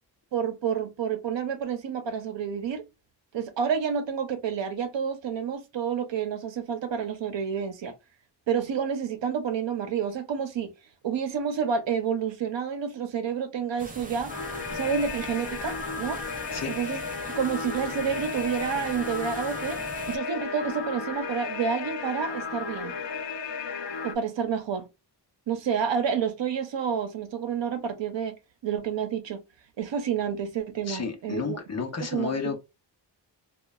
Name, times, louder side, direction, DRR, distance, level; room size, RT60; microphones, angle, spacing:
voice 1, 0.3-2.9 3.3-7.9 8.5-10.7 11.0-14.3 14.7-16.2 16.7-17.0 17.4-23.0 24.0-24.9 25.5-28.4 28.6-29.4 29.8-31.6 32.1-32.5, right 7 dB, 90° right, 0.8 m, -29 dB
sound 1, 13.8-20.2, right 2 dB, 20° right, 0.4 m, -42 dB
sound 2, 14.3-24.2, left 5 dB, 80° left, 0.6 m, -34 dB
voice 2, 30.9-32.6, left 5 dB, 35° left, 0.7 m, -31 dB
3.0 x 2.3 x 2.3 m
wide cardioid pair, 155°, 43 cm